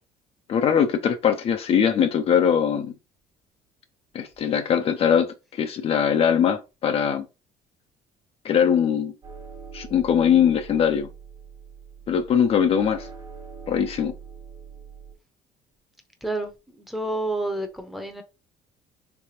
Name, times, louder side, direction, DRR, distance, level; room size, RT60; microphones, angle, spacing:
voice 1, 0.5-2.9 4.1-7.2 8.4-9.1 9.7-11.1 12.1-13.1 13.7-14.1, left 8 dB, 45° left, 0.5 m, -21 dB
sound 1, 9.2-15.1, right 6 dB, 35° right, 1.3 m, -43 dB
voice 2, 16.2-18.2, right 2 dB, ahead, 0.7 m, -29 dB
3.3 x 3.3 x 2.8 m
cardioid pair, 110°, 14 cm